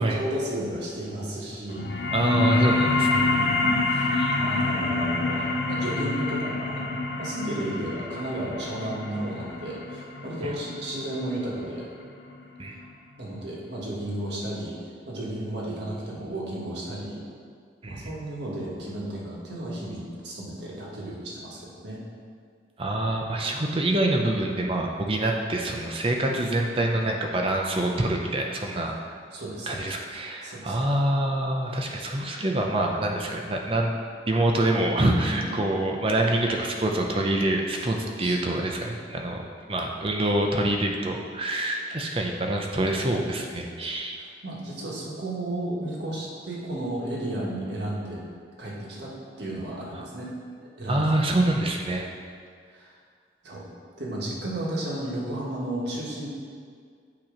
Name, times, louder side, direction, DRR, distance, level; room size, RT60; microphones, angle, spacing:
voice 1, 0.0-2.1 3.4-4.1 4.4-11.8 13.2-17.2 17.9-22.0 28.8-28.9 29.3-29.9 30.4-30.7 35.3-35.5 37.9-38.4 43.8-43.9 44.4-48.2 48.6-50.3 50.6-51.2 52.7-52.9 53.4-53.7 54.0-56.3, right 1 dB, 70° right, -4 dB, 1.4 m, -33 dB
sound 1, 1.7-12.8, left 3 dB, 60° left, 0.6 m, -27 dB
voice 2, 2.1-3.3 4.1-4.4 10.4-10.5 12.6-12.8 17.8-18.1 22.8-29.0 29.7-33.9 34.3-39.4 39.7-44.2 49.9-50.1 50.9-52.1, right 1 dB, 30° right, 1 dB, 0.6 m, -26 dB
8.6 x 3.0 x 5.0 m, 2.1 s
head